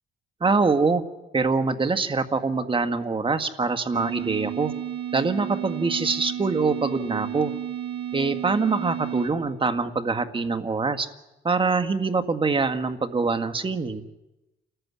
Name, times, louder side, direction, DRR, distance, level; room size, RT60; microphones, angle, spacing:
voice 1, 0.4-1.0 1.3-4.7 5.1-7.5 8.1-11.1 11.4-14.0, right 4 dB, 25° right, 7 dB, 1.8 m, -24 dB
sound 1, 3.9-9.3, right 10 dB, 55° right, 4.6 m, -32 dB
29.0 x 14.5 x 9.9 m, 1.0 s
cardioid pair, 90°, 20 cm